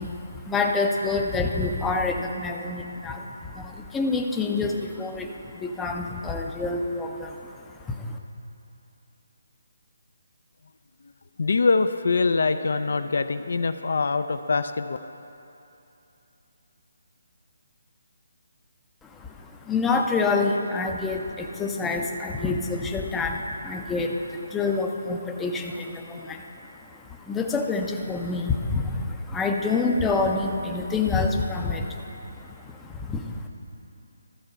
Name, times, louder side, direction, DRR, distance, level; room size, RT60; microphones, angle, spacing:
voice 1, 0.0-8.2 19.0-33.5, left 3 dB, 10° left, 2 dB, 0.5 m, -27 dB
voice 2, 11.4-15.0, left 4 dB, 65° left, 10 dB, 0.4 m, -23 dB
13.0 x 4.5 x 6.5 m, 2.8 s
hypercardioid pair, 160°, 0 cm